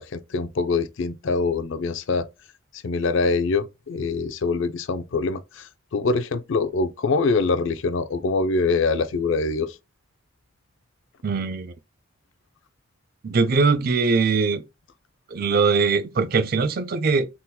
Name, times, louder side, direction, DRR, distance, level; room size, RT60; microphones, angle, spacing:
voice 1, 0.0-2.3 2.8-9.8, left 4 dB, 65° left, 0.4 m, -24 dB
voice 2, 11.2-11.7 13.2-14.6 15.3-17.3, right 4 dB, 45° right, 0.4 m, -21 dB
3.6 x 2.9 x 2.2 m
head